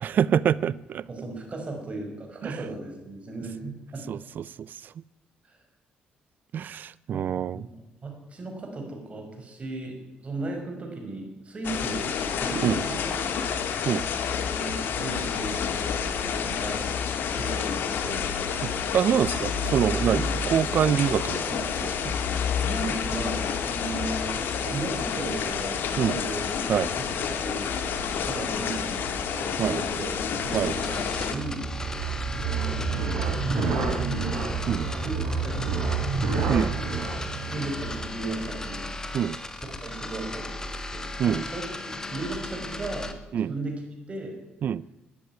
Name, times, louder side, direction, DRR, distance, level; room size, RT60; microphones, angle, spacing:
voice 1, 0.0-1.1 2.4-2.6 4.1-4.9 6.5-7.7 12.6-12.8 13.8-14.0 18.9-22.0 26.0-26.2 26.7-26.9 29.6-29.8 30.5-30.7 34.7-34.9 36.5-36.7 39.1-39.4 41.2-41.4 43.3-43.5 44.6-44.8, right 9 dB, 55° right, 21 dB, 0.5 m, -25 dB
voice 2, 1.1-4.0 5.4-5.6 7.1-7.8 8.0-12.1 12.4-13.4 14.3-15.6 16.1-16.9 17.4-18.4 20.0-20.3 22.6-26.6 27.0-27.7 28.2-31.7 32.4-33.1 33.5-34.4 35.0-35.8 36.3-36.5 37.5-38.9 39.5-41.6 42.1-43.8 44.1-44.4, right 2 dB, 35° right, 2 dB, 5.4 m, -36 dB
sound 1, 11.6-31.3, left 7 dB, 65° left, 1.9 m, -29 dB
sound 2, 29.0-38.6, right 4 dB, 75° right, 3.9 m, -30 dB
sound 3, 30.5-43.1, left 2 dB, 15° left, 1.6 m, -36 dB
14.0 x 10.0 x 9.4 m, 0.98 s
cardioid pair, 90°, 4 cm